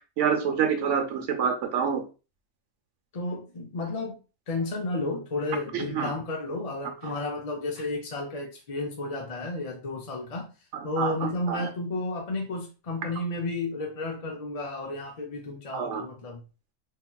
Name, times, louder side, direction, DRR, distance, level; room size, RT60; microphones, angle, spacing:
voice 1, 0.2-2.0 5.7-6.1 11.0-11.7 15.7-16.0, right 7 dB, 70° right, 4 dB, 1.0 m, -27 dB
voice 2, 3.1-4.2 4.5-10.5 10.8-16.4, left 2 dB, 45° left, 1 dB, 0.5 m, -32 dB
3.6 x 2.8 x 2.2 m, 0.32 s
omnidirectional pair, 1.3 m